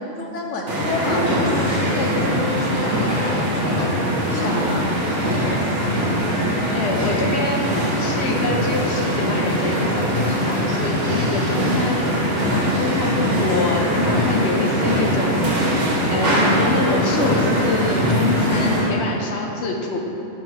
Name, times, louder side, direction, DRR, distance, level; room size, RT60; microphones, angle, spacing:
voice 1, 0.2-5.6 10.9-11.5, left 2 dB, 80° left, -1 dB, 1.3 m, -30 dB
sound 1, 0.7-18.9, equal, 75° right, 1.5 m, -21 dB
voice 2, 6.7-7.7 8.0-12.0 12.8-15.7 16.1-20.0, left 2 dB, 65° left, 1 dB, 1.0 m, -25 dB
8.9 x 3.4 x 6.3 m, 2.9 s
omnidirectional pair, 1.3 m